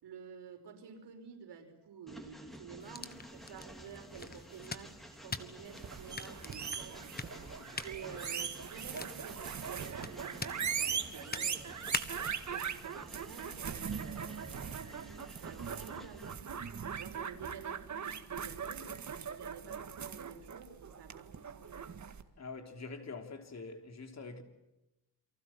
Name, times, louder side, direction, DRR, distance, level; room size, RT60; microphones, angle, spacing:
voice 1, 0.0-7.1 7.8-11.9 12.5-16.6 17.0-22.1, right 6 dB, 80° right, 5.4 m, -50 dB
Train, 2.1-16.3, equal, ahead, 3.0 m, -53 dB
sound 1, 2.8-12.4, left 4 dB, 25° left, 1.4 m, -45 dB
sound 2, 5.7-22.2, right 7 dB, 45° right, 1.9 m, -40 dB
voice 2, 7.3-8.2 22.4-24.4, left 4 dB, 40° left, 3.5 m, -46 dB
29.0 x 24.0 x 7.4 m
wide cardioid pair, 145°, 41 cm